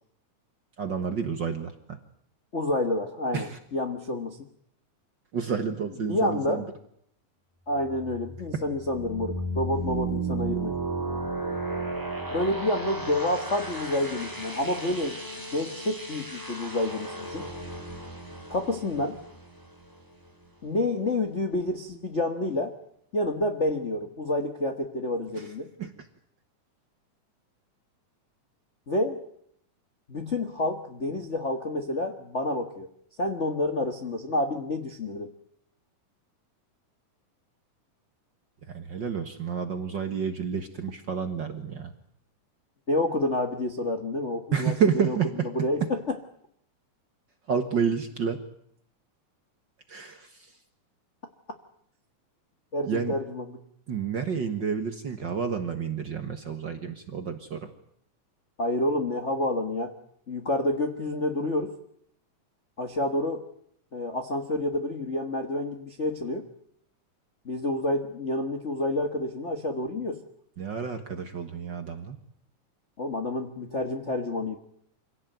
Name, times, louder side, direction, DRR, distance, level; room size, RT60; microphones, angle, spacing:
voice 1, 0.8-2.0 3.3-3.6 5.3-6.6 8.5-8.6 25.8-25.9 38.7-41.9 44.5-45.5 47.5-48.4 49.9-50.5 52.9-53.1 53.9-57.7 70.6-72.2, right 6 dB, 50° right, 7 dB, 1.6 m, -29 dB
voice 2, 2.5-4.4 6.1-6.7 7.7-10.8 12.3-17.4 18.5-19.2 20.6-22.7 23.1-25.7 28.9-29.2 30.1-32.9 33.2-35.3 42.9-44.8 45.0-45.2 45.5-46.2 52.7-53.6 58.6-59.9 60.3-61.7 62.8-63.4 63.9-66.5 67.4-70.2 73.0-74.6, left 1 dB, 40° left, 4 dB, 1.0 m, -29 dB
sound 1, 7.8-20.5, right 2 dB, 5° right, 3.4 m, -34 dB
25.5 x 17.0 x 9.2 m, 0.69 s
omnidirectional pair, 3.5 m